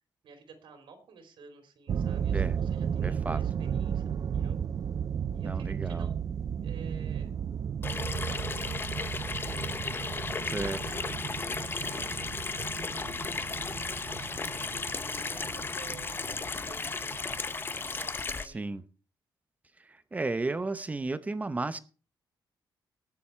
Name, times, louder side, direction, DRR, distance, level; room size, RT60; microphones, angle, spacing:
voice 1, 0.2-4.6 5.3-6.1 6.6-7.3 8.0-9.6 10.1-12.1 12.7-18.7, right 5 dB, 85° right, 3.3 m, -53 dB
sound 1, 1.9-18.1, right 8 dB, 45° right, 0.6 m, -34 dB
voice 2, 3.0-3.4 5.4-6.1 10.4-10.8 18.5-18.8 19.8-21.8, right 3 dB, 20° right, 0.8 m, -33 dB
Water tap faucet / Sink (filling or washing), 7.8-18.5, left 4 dB, 25° left, 0.7 m, -35 dB
18.5 x 7.1 x 4.5 m
wide cardioid pair, 150°, 8 cm